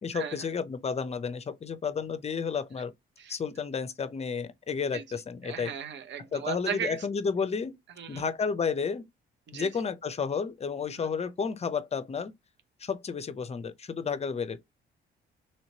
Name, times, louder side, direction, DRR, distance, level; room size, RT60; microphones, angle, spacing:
voice 1, 0.0-2.9 3.3-5.7 6.3-7.8 8.1-9.0 9.5-12.3 12.8-14.6, left 5 dB, 30° left, 0.6 m, -31 dB
voice 2, 5.4-7.1 8.0-8.2 9.5-9.7 11.0-11.1, right 7 dB, 65° right, 0.8 m, -36 dB
3.1 x 2.9 x 2.8 m
cardioid pair, 90°, 20 cm